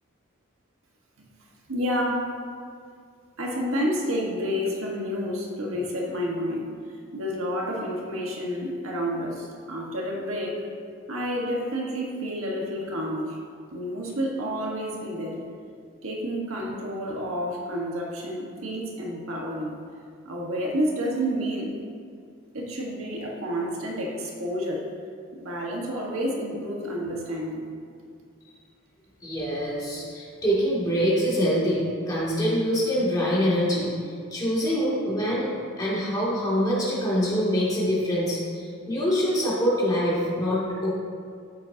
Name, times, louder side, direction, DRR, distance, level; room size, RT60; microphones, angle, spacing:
voice 1, 1.7-2.2 3.4-6.6 7.1-10.6 11.1-13.4 13.7-15.4 16.0-19.7 20.2-21.7 22.5-24.8 25.3-27.6, equal, 85° right, -2 dB, 1.6 m, -29 dB
voice 2, 29.2-40.9, equal, 20° left, -7 dB, 2.6 m, -25 dB
13.0 x 7.7 x 2.9 m, 2.2 s
head